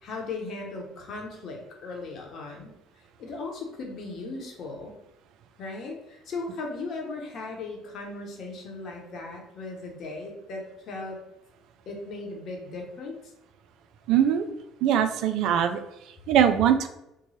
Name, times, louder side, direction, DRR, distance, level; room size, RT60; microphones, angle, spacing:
voice 1, 0.0-5.0 5.6-11.2 11.9-13.3, left 3 dB, 55° left, 1 dB, 0.9 m, -37 dB
voice 2, 14.1-14.5 14.8-15.8 16.3-16.9, right 9 dB, 65° right, 7 dB, 0.4 m, -21 dB
3.0 x 2.2 x 4.1 m, 0.86 s
hypercardioid pair, 55°, 0 cm